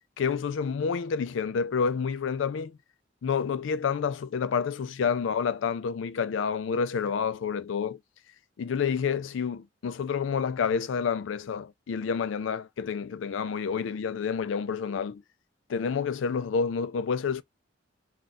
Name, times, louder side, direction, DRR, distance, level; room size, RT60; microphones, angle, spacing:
voice 1, 0.2-2.8 3.2-8.0 8.6-15.2 15.7-17.4, left 6 dB, 85° left, 0.4 m, -29 dB
2.4 x 2.3 x 4.0 m
head